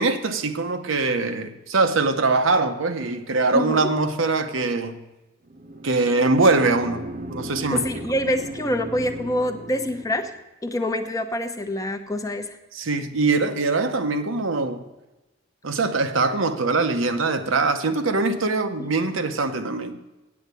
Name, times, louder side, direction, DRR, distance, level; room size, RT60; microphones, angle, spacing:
voice 1, 0.0-5.0 5.8-7.8 12.7-14.8 15.6-20.0, right 3 dB, 85° right, 7 dB, 0.9 m, -22 dB
voice 2, 3.5-3.9 7.7-10.3 10.6-12.4, left 1 dB, 15° left, 7 dB, 0.7 m, -26 dB
sound 1, 5.5-10.4, right 1 dB, 45° right, 0.8 m, -36 dB
8.7 x 8.6 x 6.8 m, 1.0 s
head